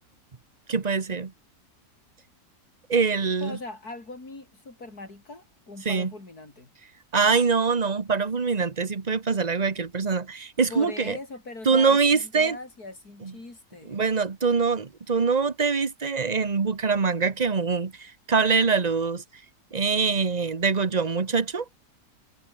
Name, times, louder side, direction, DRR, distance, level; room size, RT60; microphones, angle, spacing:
voice 1, 0.7-1.3 2.9-3.6 5.8-6.1 7.1-11.2 11.6-12.6 13.2-13.3 13.9-19.2 19.7-21.6, right 5 dB, 30° right, 1.2 m, -24 dB
voice 2, 3.4-6.7 10.7-14.0, left 2 dB, 80° left, 5.7 m, -41 dB
omnidirectional pair, 1.6 m